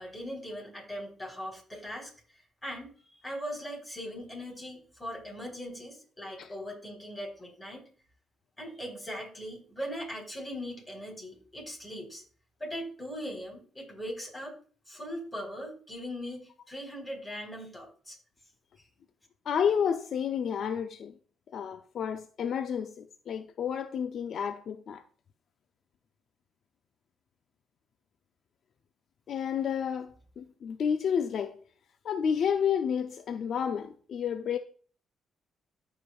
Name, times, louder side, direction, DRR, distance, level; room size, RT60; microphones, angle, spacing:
voice 1, 0.0-7.8 8.6-12.2 12.6-14.6 14.9-18.2, equal, 15° left, 3.8 m, -40 dB
voice 2, 19.5-21.1 21.5-25.0 29.3-31.6 32.0-34.6, left 7 dB, 65° left, 0.5 m, -30 dB
14.5 x 5.0 x 2.3 m
cardioid pair, 90°, 0 cm